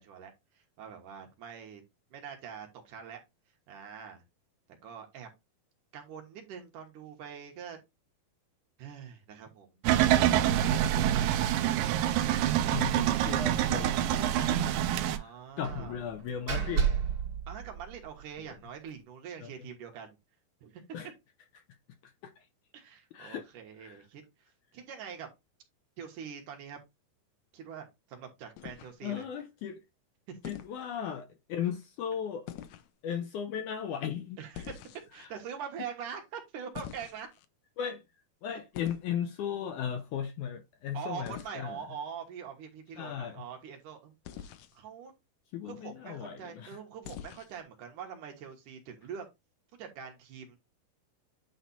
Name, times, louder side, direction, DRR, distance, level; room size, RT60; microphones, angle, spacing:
voice 1, 0.0-1.8 2.1-3.2 3.7-4.2 4.8-5.3 5.9-7.8 8.8-11.7 15.0-16.0 17.5-20.2 20.6-20.8 22.7-24.2 24.7-25.3 26.0-26.8 27.5-29.3 30.3-30.4 34.4-34.7 35.1-37.3 40.9-45.1 45.6-49.3 49.8-50.6, right 7 dB, 65° right, 2.7 m, -44 dB
sound 1, 9.8-15.2, right 11 dB, 80° right, 2.4 m, -26 dB
voice 2, 12.7-14.7 15.1-16.9 19.4-19.5 20.9-21.1 22.0-22.3 23.1-23.5 23.8-24.0 29.0-29.8 30.5-32.6 33.0-34.4 37.8-38.0 38.4-41.8 43.0-43.4 45.5-46.8, left 8 dB, 75° left, 1.9 m, -36 dB
Slam, 12.7-13.0 13.3-13.4 13.7-13.9 15.6-18.2, right 7 dB, 45° right, 2.9 m, -32 dB
sound 2, 28.6-29.2 30.4-30.8 32.5-32.9 34.5-35.3 36.7-37.5 38.7-39.1 41.3-41.5 44.2-44.8 47.0-47.6, left 10 dB, 90° left, 1.6 m, -44 dB
9.3 x 3.3 x 4.1 m
omnidirectional pair, 4.2 m